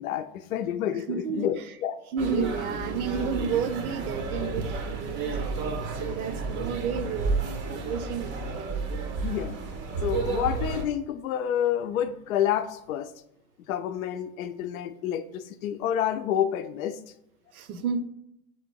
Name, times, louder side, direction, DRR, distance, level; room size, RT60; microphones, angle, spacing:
voice 1, 0.0-2.0 2.3-2.4 9.2-9.6 10.0-13.1 13.7-17.0, left 10 dB, 65° left, 10 dB, 0.5 m, -29 dB
voice 2, 1.1-1.5 2.1-8.5 17.5-18.0, right 7 dB, 75° right, 10 dB, 0.7 m, -31 dB
sound 1, 2.2-10.8, right 3 dB, 25° right, 0.5 m, -31 dB
3.7 x 3.0 x 4.6 m, 0.81 s
hypercardioid pair, 110°, 44 cm